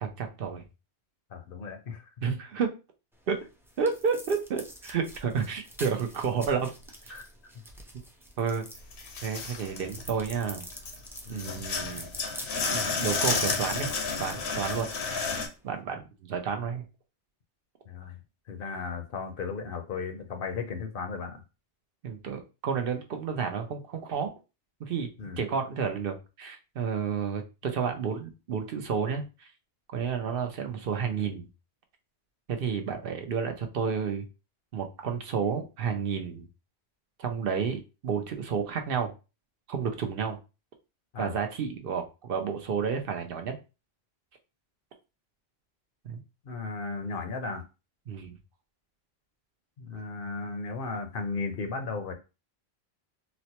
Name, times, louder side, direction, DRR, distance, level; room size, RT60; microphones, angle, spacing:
voice 1, 0.0-0.6 2.2-2.7 3.3-3.4 3.8-6.7 8.4-8.7 9.2-10.7 11.3-12.1 12.7-13.9 14.2-14.9 15.6-16.9 22.0-24.3 24.8-25.1 25.4-29.5 29.9-31.5 32.5-34.3 34.7-36.5 37.2-39.1 39.7-40.4 41.2-43.6 46.0-46.2 48.1-48.4, right 6 dB, 65° right, 0.8 m, -31 dB
voice 2, 1.3-2.4 7.1-7.3 11.3-11.6 17.9-18.2 18.5-21.4 25.2-25.4 41.1-41.3 46.5-47.6 49.8-52.1, left 4 dB, 65° left, 0.8 m, -35 dB
sound 1, 3.1-15.8, equal, 5° right, 0.4 m, -46 dB
sound 2, 8.9-10.4 10.7-15.5, left 4 dB, 80° left, 1.0 m, -31 dB
4.0 x 2.1 x 2.8 m
omnidirectional pair, 1.1 m